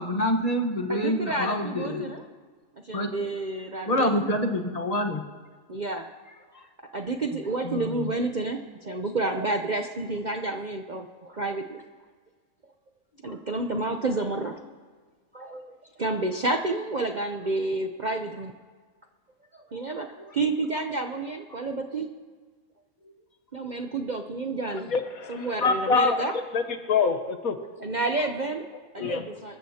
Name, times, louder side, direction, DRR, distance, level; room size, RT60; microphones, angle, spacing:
voice 1, 0.0-2.1 2.9-3.1 3.9-5.2 7.6-8.1 13.3-13.4 20.2-20.3 21.5-21.6, left 1 dB, 30° left, 3 dB, 1.2 m, -27 dB
voice 2, 0.9-2.2 2.8-4.3 5.7-6.1 6.9-11.8 13.2-14.6 15.3-15.6 16.0-18.5 19.5-20.1 20.3-22.1 23.5-24.9 25.3-26.3 27.8-29.6, right 2 dB, 40° right, 4 dB, 0.7 m, -30 dB
voice 3, 24.9-26.2 26.5-26.6 26.9-27.6 29.0-29.2, left 5 dB, 70° left, 8 dB, 1.5 m, -24 dB
25.5 x 14.0 x 2.9 m, 1.5 s
omnidirectional pair, 1.6 m